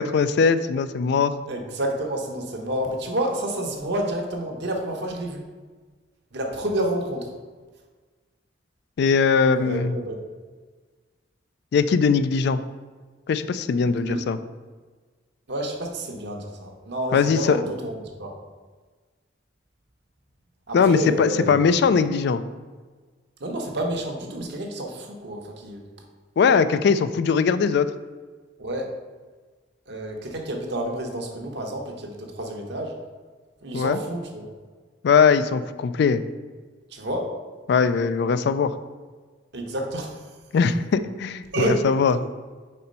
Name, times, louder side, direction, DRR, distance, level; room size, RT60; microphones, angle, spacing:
voice 1, 0.0-1.3 9.0-10.0 11.7-12.6 13.3-14.4 17.1-17.6 20.7-22.4 26.4-27.9 33.7-34.0 35.0-36.2 37.7-38.8 40.5-42.2, left 5 dB, 60° left, 13 dB, 0.3 m, -20 dB
voice 2, 1.5-5.4 6.3-7.3 9.6-10.2 14.0-14.2 15.5-18.3 20.7-21.7 23.4-25.8 28.6-28.9 29.9-32.9 33.6-34.5 36.9-37.3 39.5-40.2 41.5-41.8, right 1 dB, 65° right, 1 dB, 1.0 m, -29 dB
4.3 x 4.2 x 5.3 m, 1.4 s
head